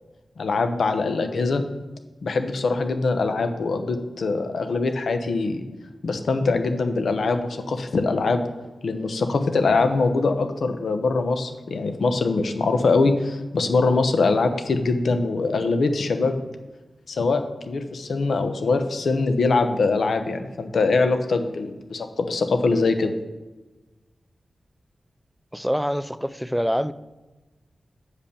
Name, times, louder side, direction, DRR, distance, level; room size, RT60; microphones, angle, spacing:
voice 1, 0.4-1.6 2.2-5.6 6.0-8.4 8.8-16.4 17.1-23.1, left 3 dB, 70° left, 1.0 m, -23 dB
voice 2, 25.5-26.9, equal, ahead, 0.3 m, -25 dB
8.1 x 5.6 x 6.9 m
wide cardioid pair, 165°, 0 cm